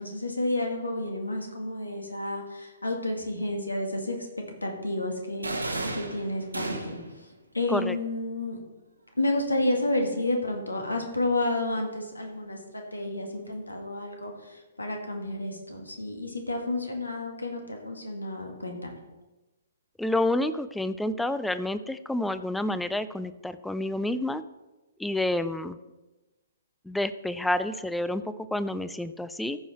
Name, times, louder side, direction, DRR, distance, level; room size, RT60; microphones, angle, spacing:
voice 1, 0.0-7.3 7.5-8.6 9.2-19.0, left 2 dB, 80° left, 3 dB, 2.0 m, -31 dB
sound 1, 5.4-7.2, right 2 dB, 80° right, 1.4 m, -33 dB
voice 2, 20.0-24.4 25.0-25.8 26.9-29.6, left 1 dB, 5° left, 13 dB, 0.4 m, -29 dB
14.5 x 5.5 x 4.2 m, 1.1 s
figure-of-eight pair, 120°, 0 cm